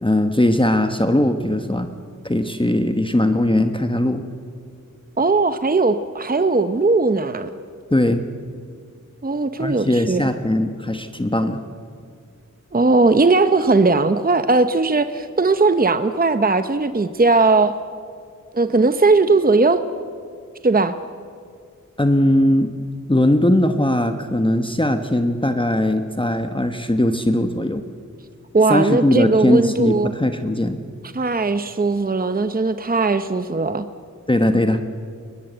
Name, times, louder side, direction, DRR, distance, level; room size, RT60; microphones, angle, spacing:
voice 1, 0.0-1.9 2.2-4.2 7.9-8.2 9.6-11.6 22.0-22.7 23.1-27.8 28.7-30.8 34.3-34.8, left 1 dB, 15° left, 7 dB, 1.1 m, -19 dB
voice 2, 5.2-7.5 9.2-10.3 12.7-17.8 18.5-19.8 20.6-20.9 28.5-30.1 31.1-33.9, right 3 dB, 30° right, 10 dB, 0.8 m, -18 dB
22.0 x 20.5 x 8.0 m, 2.2 s
wide cardioid pair, 65°, 31 cm